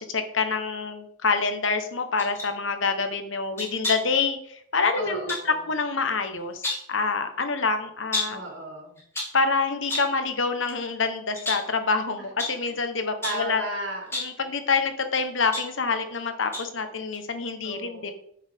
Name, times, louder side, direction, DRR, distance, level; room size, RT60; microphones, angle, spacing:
voice 1, 0.0-6.6 6.9-8.4 9.3-13.6 14.1-18.1, left 4 dB, 75° left, 8 dB, 1.1 m, -26 dB
sound 1, 2.2-2.5 3.6-4.2 5.3-5.5 6.4-6.9 8.1-8.5 9.0-9.4 9.9-10.2 10.7-10.9 11.3-11.8 12.4-12.6 13.2-13.5 14.0-14.4 15.1-16.2 16.5-16.8 17.1-17.2, left 2 dB, 15° left, 2.7 m, -32 dB
voice 2, 5.0-5.6 8.3-9.0 13.2-14.1 17.6-18.1, right 1 dB, 70° right, 0 dB, 2.7 m, -34 dB
10.5 x 6.5 x 3.6 m, 0.69 s
head